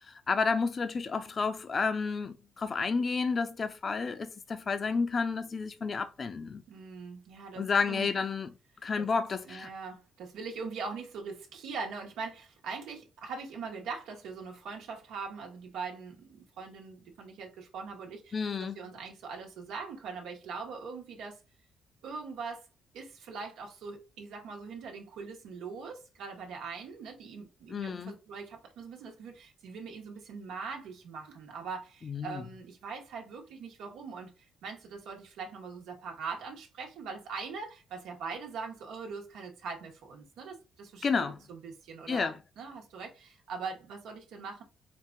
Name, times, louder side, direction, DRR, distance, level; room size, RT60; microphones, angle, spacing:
voice 1, 0.3-6.6 7.6-8.5 8.8-9.7 18.3-18.8 27.7-28.1 32.0-32.4 41.0-41.4 42.1-42.3, left 5 dB, 40° left, 0.6 m, -31 dB
voice 2, 6.7-8.1 9.0-9.1 9.4-21.4 22.0-22.7 22.9-44.6, right 5 dB, 85° right, 1.2 m, -42 dB
4.6 x 2.4 x 3.8 m
cardioid pair, 90°, 0 cm